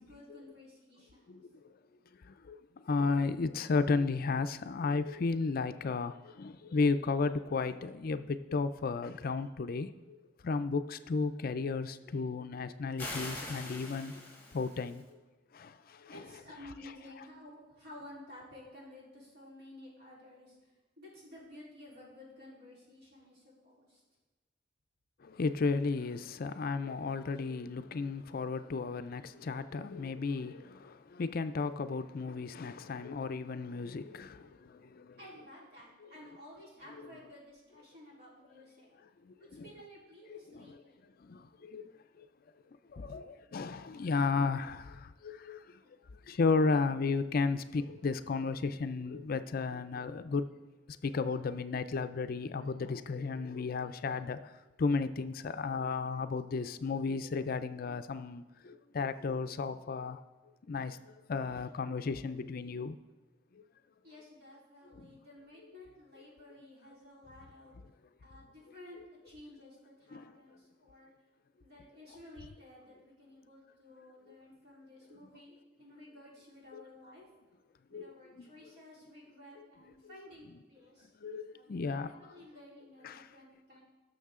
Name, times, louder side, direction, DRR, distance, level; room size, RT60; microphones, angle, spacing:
voice 1, 0.0-1.4 16.1-20.6 21.0-24.0 35.2-38.9 39.4-41.0 45.8-45.9 64.0-67.8 68.2-69.0 69.2-71.1 71.6-77.3 77.9-81.1 81.5-83.8, left 1 dB, 55° right, 3.9 m, -54 dB
voice 2, 1.3-1.7 2.1-10.2 10.4-14.2 14.5-15.2 15.5-16.3 25.2-35.2 36.0-36.1 39.2-39.7 40.3-42.3 42.9-45.8 46.2-50.5 51.0-60.2 60.7-63.0 63.5-63.6 64.9-65.2 70.1-70.3 74.3-74.4 76.7-76.8 77.9-78.5 79.6-79.7 80.0-80.1 81.2-82.4 83.0-83.3, left 4 dB, 50° left, 0.4 m, -34 dB
sound 1, 13.0-15.0, left 2 dB, 10° left, 2.3 m, -43 dB
17.0 x 6.6 x 3.7 m
head